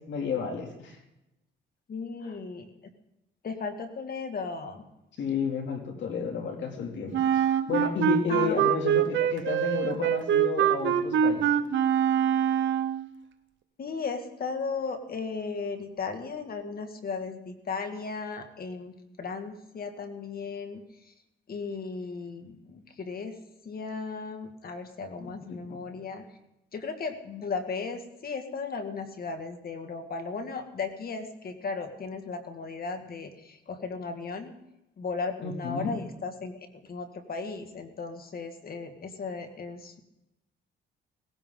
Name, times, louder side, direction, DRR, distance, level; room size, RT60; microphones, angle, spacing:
voice 1, 0.1-1.0 2.2-2.3 5.2-7.1 7.7-11.4 25.2-25.8 35.4-35.9, left 5 dB, 70° left, 2 dB, 2.8 m, -31 dB
voice 2, 1.9-2.7 3.4-4.8 8.3-8.6 13.8-20.8 21.5-23.4 23.6-26.3 26.7-34.6 35.0-40.0, left 4 dB, 50° left, 6 dB, 2.1 m, -36 dB
Wind instrument woodwind instrument, 7.1-13.1, right 9 dB, 70° right, 1.0 m, -24 dB
18.0 x 16.0 x 3.9 m, 0.91 s
cardioid pair, 90°, 20 cm